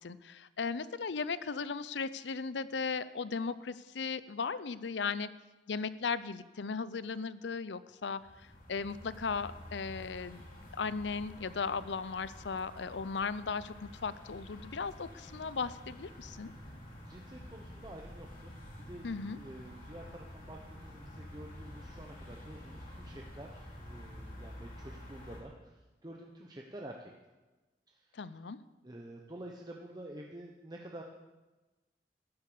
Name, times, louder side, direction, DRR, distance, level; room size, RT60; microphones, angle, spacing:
voice 1, 0.0-5.3 5.7-8.2 8.7-10.4 10.8-16.5 19.0-19.4 28.1-28.6, left 5 dB, 80° left, 16 dB, 0.6 m, -36 dB
sound 1, 8.2-25.4, left 1 dB, 50° left, 3.0 m, -49 dB
voice 2, 17.1-18.5 18.8-19.1 19.4-25.8 26.0-27.1 27.9-28.2 28.8-31.0, right 1 dB, 25° right, 1 dB, 0.9 m, -49 dB
13.0 x 10.5 x 6.8 m, 1.2 s
head